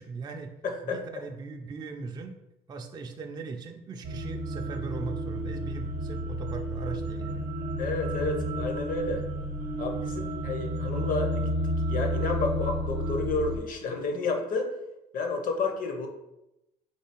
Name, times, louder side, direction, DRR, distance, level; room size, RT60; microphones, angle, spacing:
voice 1, 0.0-0.5 0.8-2.4 2.7-7.5, right 4 dB, 25° right, 3 dB, 0.3 m, -39 dB
voice 2, 0.6-1.0 7.8-9.2 9.8-11.6 11.9-14.7 15.1-16.1, left 3 dB, 55° left, 4 dB, 0.8 m, -30 dB
sound 1, 4.0-13.6, equal, 85° right, 0.6 m, -31 dB
3.3 x 2.8 x 4.4 m, 0.90 s
cardioid pair, 110°, 17 cm